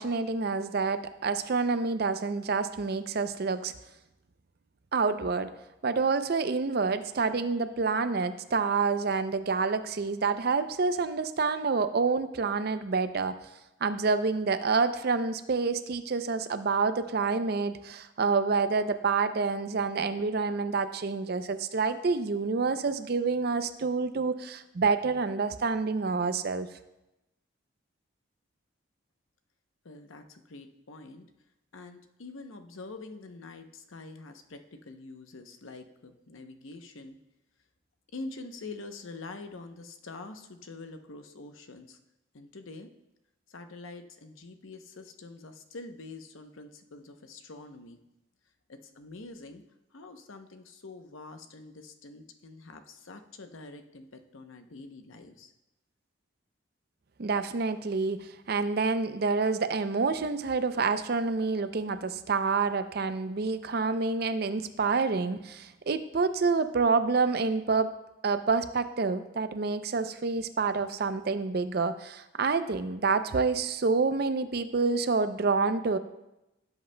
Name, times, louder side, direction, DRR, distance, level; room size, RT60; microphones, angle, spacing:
voice 1, 0.0-3.7 4.9-5.5 5.8-13.4 13.8-26.7 57.2-67.9 68.2-76.0, right 4 dB, 50° right, 11 dB, 0.5 m, -28 dB
voice 2, 29.8-31.3 31.7-37.2 38.1-42.0 42.3-42.9 43.5-48.0 48.7-49.6 49.9-55.5, left 3 dB, 80° left, 7 dB, 0.8 m, -45 dB
16.5 x 7.9 x 2.2 m, 0.93 s
head